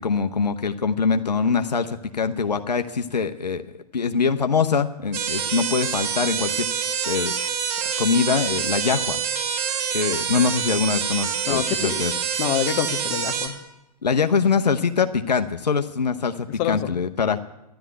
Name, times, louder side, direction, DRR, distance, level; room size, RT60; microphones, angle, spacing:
voice 1, 0.0-3.6 3.9-6.7 7.1-7.3 7.8-9.2 9.9-12.1 14.0-17.4, left 5 dB, 75° left, 7 dB, 0.9 m, -23 dB
sound 1, 5.1-13.5, right 7 dB, 35° right, 3.3 m, -26 dB
voice 2, 11.4-12.0 12.4-13.6 16.6-17.0, left 10 dB, 35° left, 8 dB, 1.3 m, -26 dB
13.0 x 11.5 x 9.3 m, 0.95 s
figure-of-eight pair, 105°, 21 cm